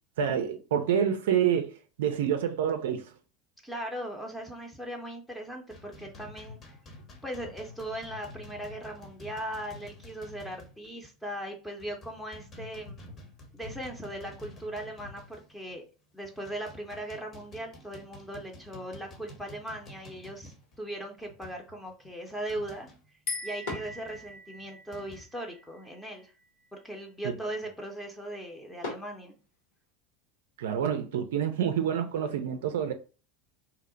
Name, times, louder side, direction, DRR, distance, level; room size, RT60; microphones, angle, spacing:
voice 1, 0.2-1.7 2.0-3.1 30.6-32.9, right 8 dB, 75° right, 0.4 m, -27 dB
voice 2, 3.6-6.6 7.2-13.0 13.5-15.8 16.1-22.9 23.4-26.3 26.7-29.3, right 1 dB, 5° left, 0.6 m, -39 dB
sound 1, 5.7-11.0 11.2-11.4 11.8-15.8 16.2-23.1 23.8-25.2, left 1 dB, 35° left, 0.9 m, -49 dB
sound 2, 19.9-29.9, left 2 dB, 75° left, 1.6 m, -48 dB
sound 3, 23.3-26.7, left 3 dB, 55° left, 1.1 m, -41 dB
2.7 x 2.0 x 3.8 m
hypercardioid pair, 85°, 0 cm